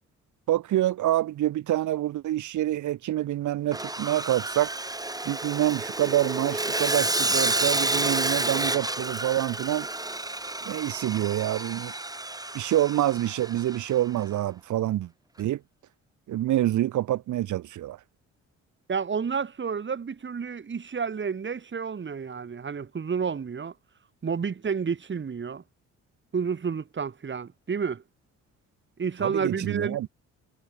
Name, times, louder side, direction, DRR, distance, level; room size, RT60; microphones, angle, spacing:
voice 1, 0.5-4.7 5.2-9.9 10.6-11.9 12.5-15.1 15.4-15.6 16.3-18.0 29.2-30.1, right 13 dB, 75° right, 1.7 m, -26 dB
Sawing, 3.7-14.0, right 2 dB, 10° right, 3.5 m, -30 dB
voice 2, 18.9-23.7 24.2-25.6 26.3-28.0 29.0-30.1, right 6 dB, 40° right, 4.0 m, -30 dB
cardioid pair, 90°, 30 cm